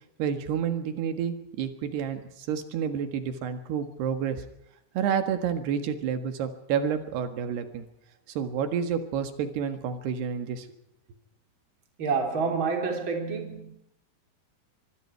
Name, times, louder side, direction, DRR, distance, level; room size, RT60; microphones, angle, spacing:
voice 1, 0.2-4.4 5.0-7.9 8.3-10.7, right 7 dB, 90° right, 3.8 m, -29 dB
voice 2, 12.0-13.7, right 5 dB, 30° right, 3.7 m, -28 dB
24.5 x 24.0 x 4.6 m
omnidirectional pair, 4.6 m